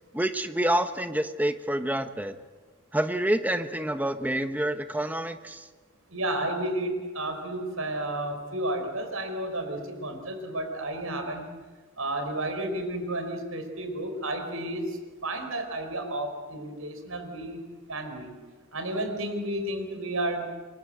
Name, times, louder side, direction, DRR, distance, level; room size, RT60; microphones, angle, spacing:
voice 1, 0.1-2.4 2.9-5.7, right 1 dB, 10° right, 9 dB, 1.1 m, -27 dB
voice 2, 6.1-11.5 12.0-17.6 17.9-18.3 18.7-20.5, right 1 dB, 75° right, 6 dB, 5.1 m, -32 dB
29.0 x 23.5 x 7.9 m, 1.4 s
head